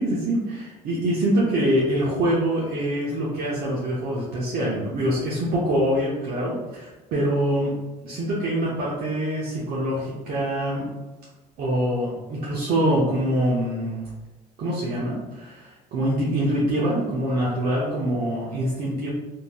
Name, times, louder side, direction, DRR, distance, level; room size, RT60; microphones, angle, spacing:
voice 1, 0.0-7.7 8.0-10.9 11.6-14.0 14.6-19.1, right 1 dB, 65° right, -6 dB, 0.7 m, -24 dB
3.1 x 2.7 x 2.2 m, 1.1 s
cardioid pair, 110°, 17 cm